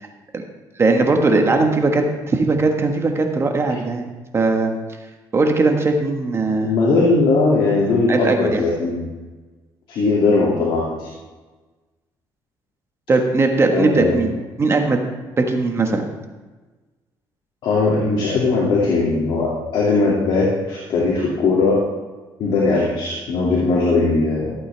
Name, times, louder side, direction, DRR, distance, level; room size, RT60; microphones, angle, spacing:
voice 1, 0.8-4.0 4.3-4.7 5.3-6.7 8.1-8.6 13.1-14.3 14.6-15.0 15.4-16.1, right 3 dB, 30° right, 3 dB, 1.5 m, -19 dB
voice 2, 6.6-9.1 9.9-11.1 13.7-14.2 17.6-21.8 22.4-24.5, left 3 dB, 70° left, -5 dB, 2.5 m, -19 dB
14.5 x 8.6 x 3.4 m, 1.2 s
cardioid pair, 110°, 9 cm